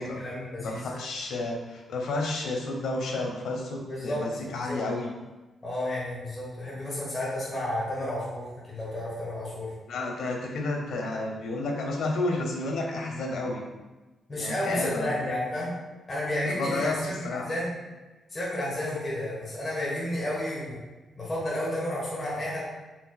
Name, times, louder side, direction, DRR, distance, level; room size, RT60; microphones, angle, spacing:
voice 1, 0.0-0.9 3.9-4.2 4.5-4.8 5.6-9.7 14.3-15.7 16.1-17.7 18.3-20.8 21.2-22.6, left 1 dB, 25° left, -7 dB, 1.1 m, -31 dB
voice 2, 0.6-5.1 9.9-13.6 14.4-15.2 16.4-17.4, left 2 dB, 85° left, 0 dB, 0.8 m, -31 dB
4.4 x 3.9 x 2.2 m, 1.1 s
cardioid pair, 125°, 0 cm